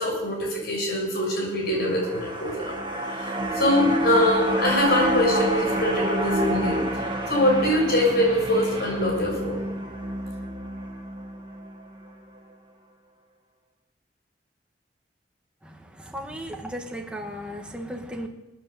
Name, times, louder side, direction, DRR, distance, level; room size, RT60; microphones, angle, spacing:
voice 1, 0.0-9.7, left 1 dB, 65° left, 0 dB, 6.4 m, -24 dB
sound 1, 1.6-12.0 12.4-12.5, equal, 25° right, 2.2 m, -28 dB
voice 2, 16.1-18.3, equal, 5° right, 2 dB, 1.6 m, -35 dB
20.0 x 9.7 x 7.1 m, 0.99 s
head